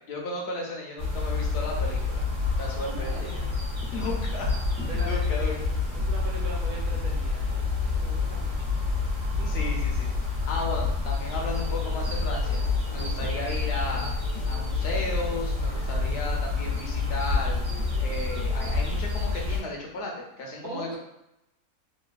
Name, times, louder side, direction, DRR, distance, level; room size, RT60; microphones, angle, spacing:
voice 1, 0.1-2.2 2.6-3.1 3.9-4.5 5.0-5.5 9.5-10.1 10.5-12.6 12.9-14.2 14.5-17.6 18.0-21.0, left 2 dB, 60° left, -1 dB, 0.7 m, -34 dB
sound 1, 1.0-19.6, left 4 dB, 55° right, 1.2 m, -28 dB
voice 2, 2.7-3.6 4.9-8.8 9.3-9.6 20.6-21.0, right 3 dB, 85° right, -2 dB, 1.2 m, -41 dB
sound 2, 11.4-19.0, left 3 dB, 75° left, 1.1 m, -46 dB
3.1 x 2.3 x 2.3 m, 0.86 s
omnidirectional pair, 1.6 m